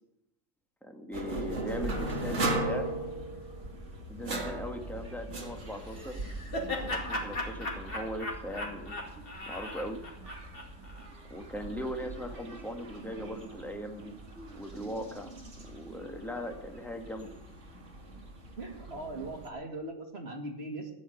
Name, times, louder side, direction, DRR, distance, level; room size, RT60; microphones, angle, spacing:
voice 1, 0.8-2.9 4.1-6.2 6.8-8.9 9.5-10.0 11.3-14.1 14.5-15.3 15.6-17.3, equal, ahead, 4 dB, 1.4 m, -39 dB
sound 1, 1.1-19.5, right 2 dB, 80° right, 2.3 m, -39 dB
Laughter, 5.9-11.1, left 1 dB, 50° left, 2.5 m, -37 dB
voice 2, 18.6-20.9, right 2 dB, 60° right, 3 dB, 2.4 m, -39 dB
13.5 x 6.4 x 9.2 m, 0.82 s
omnidirectional pair, 1.2 m